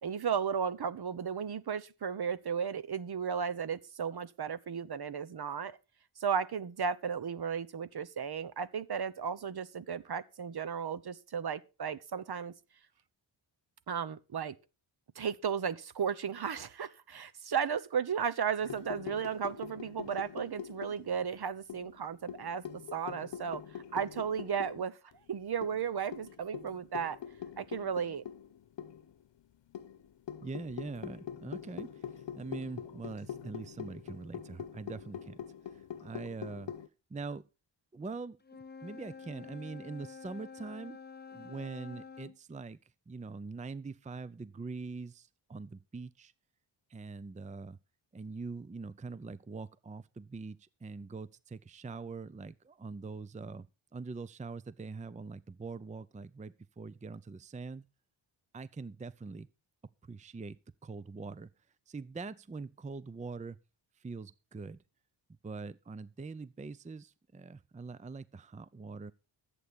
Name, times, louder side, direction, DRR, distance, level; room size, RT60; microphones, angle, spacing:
voice 1, 0.0-5.8 6.2-12.5 13.9-14.5 15.1-25.0 25.3-27.2 27.6-28.2, right 7 dB, 55° right, 1.1 m, -35 dB
sound 1, 18.6-21.3 21.7-24.8 25.1-25.2 25.6-29.1 29.7-36.9, left 9 dB, 65° left, 1.0 m, -44 dB
voice 2, 30.4-36.7 37.1-37.5 37.9-38.4 38.8-41.0 41.3-42.8 43.1-46.3 46.9-47.8 48.1-53.7 53.9-57.8 58.5-59.5 60.0-61.5 61.9-63.6 64.0-64.8 65.4-69.1, right 4 dB, 15° right, 0.6 m, -43 dB
Wind instrument woodwind instrument, 38.4-42.4, left 5 dB, 20° left, 0.9 m, -49 dB
14.0 x 8.3 x 5.3 m
cardioid pair, 75°, 47 cm